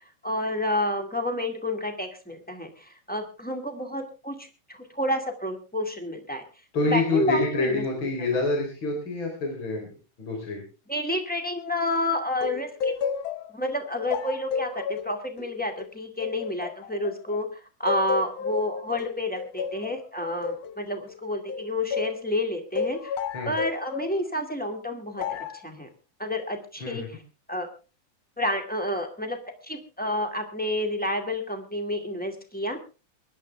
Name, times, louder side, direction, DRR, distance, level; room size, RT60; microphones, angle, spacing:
voice 1, 0.2-6.4 6.9-7.8 10.9-12.9 13.5-23.1 23.4-25.9 26.2-27.2 27.5-27.7 28.4-29.4 29.6-32.8, left 1 dB, 5° left, 4 dB, 1.5 m, -30 dB
voice 2, 6.7-9.9 10.2-10.6 23.3-23.6 26.8-27.1, left 3 dB, 35° left, 2 dB, 4.2 m, -27 dB
sound 1, 12.4-17.4 17.9-22.2 22.8-24.2 25.2-25.6, left 6 dB, 70° left, 1.7 m, -32 dB
23.5 x 11.0 x 3.4 m, 0.33 s
omnidirectional pair, 3.9 m